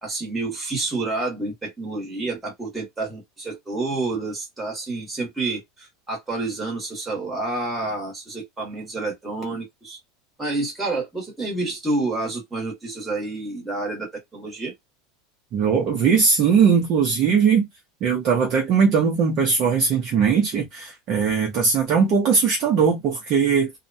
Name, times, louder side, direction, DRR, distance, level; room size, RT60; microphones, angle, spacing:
voice 1, 0.0-10.0 10.4-14.7, right 2 dB, 5° right, 1.1 m, -29 dB
voice 2, 15.5-17.6 18.0-23.7, right 6 dB, 30° right, 0.6 m, -19 dB
2.8 x 2.1 x 2.6 m
supercardioid pair, 180°, 0 cm